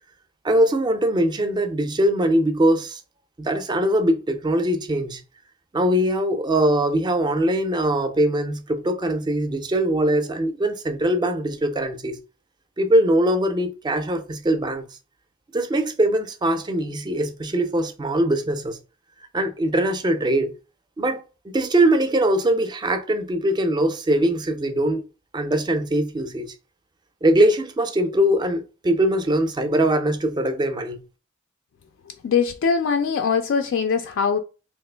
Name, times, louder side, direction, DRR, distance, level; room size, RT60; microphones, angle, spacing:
voice 1, 0.4-3.0 3.4-5.2 5.7-12.2 12.8-14.8 15.5-18.8 19.3-20.5 21.0-25.0 25.3-26.5 27.2-31.0, right 1 dB, 20° right, 0.4 m, -22 dB
voice 2, 32.2-34.4, left 6 dB, 60° left, 0.3 m, -22 dB
2.8 x 2.4 x 3.2 m
head